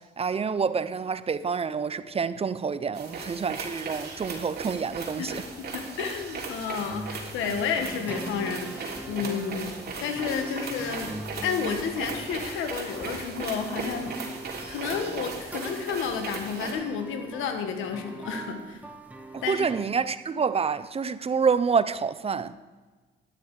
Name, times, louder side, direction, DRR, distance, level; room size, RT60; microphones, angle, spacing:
voice 1, 0.2-5.4 19.3-22.5, right 5 dB, 30° right, 0.6 m, -27 dB
sound 1, 2.9-16.7, right 4 dB, 55° right, 3.3 m, -37 dB
voice 2, 5.2-9.7 10.0-11.1 11.4-14.1 14.7-18.8 19.4-19.7, left 6 dB, 90° left, 1.5 m, -31 dB
sound 2, 6.8-19.8, right 1 dB, 5° right, 1.4 m, -42 dB
12.5 x 10.5 x 4.8 m
cardioid pair, 90°, 20 cm